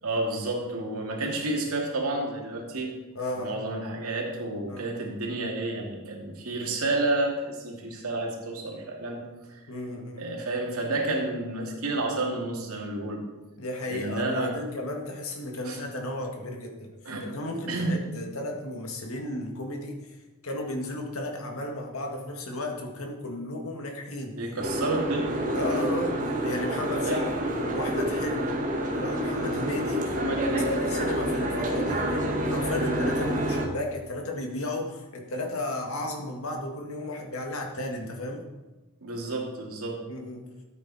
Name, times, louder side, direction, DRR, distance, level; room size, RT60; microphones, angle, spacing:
voice 1, 0.0-2.9 3.3-9.2 9.5-9.6 10.2-13.2 13.9-14.6 15.6-15.8 17.0-17.3 17.7-18.0 24.3-25.4 25.6-25.9 27.0-27.2 30.0-30.8 32.8-33.0 39.0-40.0, right 2 dB, 75° right, 0 dB, 2.6 m, -30 dB
voice 2, 3.2-3.6 4.7-4.9 9.7-10.3 13.6-16.9 17.2-20.2 20.4-24.4 25.5-27.3 27.6-28.6 28.9-30.1 30.7-32.2 32.5-38.4 40.1-40.5, left 1 dB, 70° left, 2 dB, 1.9 m, -34 dB
Boat Water vehicle, 24.6-33.7, right 1 dB, 35° right, 1.7 m, -28 dB
13.5 x 8.4 x 4.3 m, 1.1 s
head